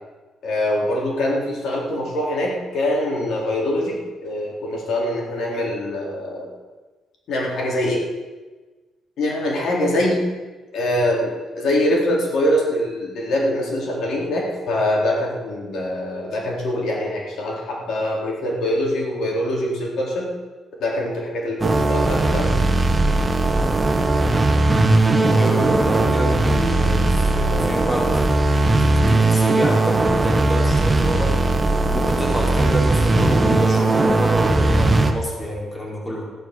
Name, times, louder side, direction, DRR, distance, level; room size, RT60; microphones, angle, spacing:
voice 1, 0.4-6.5 7.3-8.1 9.2-10.2 10.7-20.3 20.8-22.5, left 1 dB, 65° left, -2 dB, 3.9 m, -23 dB
sound 1, 21.6-35.1, right 2 dB, 15° right, 1.5 m, -18 dB
voice 2, 25.2-28.7 29.0-31.4 31.9-36.2, equal, 15° left, -2 dB, 4.0 m, -28 dB
14.5 x 10.5 x 6.8 m, 1.3 s
cardioid pair, 125°, 0 cm